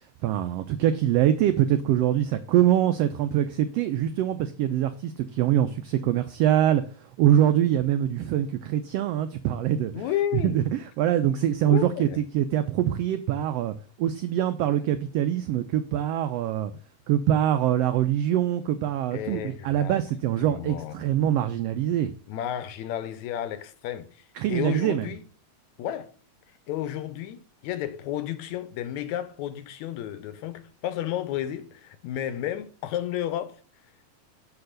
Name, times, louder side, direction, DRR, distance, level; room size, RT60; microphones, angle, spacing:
voice 1, 0.2-6.8 7.2-10.0 10.3-12.1 12.3-16.7 17.1-22.1 24.4-25.1, right 11 dB, 85° right, 1.4 m, -24 dB
voice 2, 9.9-10.7 11.6-12.2 19.1-20.0 20.4-21.1 22.3-25.2 25.8-26.1 26.7-33.6, left 11 dB, 80° left, 2.0 m, -32 dB
6.7 x 4.7 x 6.4 m
omnidirectional pair, 3.4 m